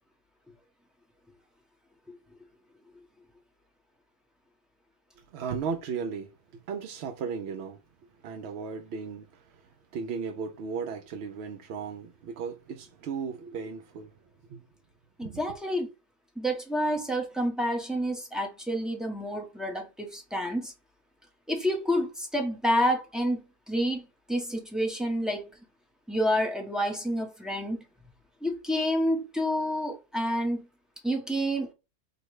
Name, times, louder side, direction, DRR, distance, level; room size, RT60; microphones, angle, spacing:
voice 1, 5.3-6.3 6.7-7.8 8.2-9.3 9.9-14.1 14.5-14.6 15.2-15.4, right 6 dB, 70° right, 0.6 m, -35 dB
voice 2, 15.2-15.9 16.4-20.7 21.5-23.4 23.7-25.5 26.1-27.8 28.4-30.7 31.0-31.7, equal, ahead, 0.6 m, -29 dB
4.5 x 2.1 x 4.7 m
omnidirectional pair, 1.6 m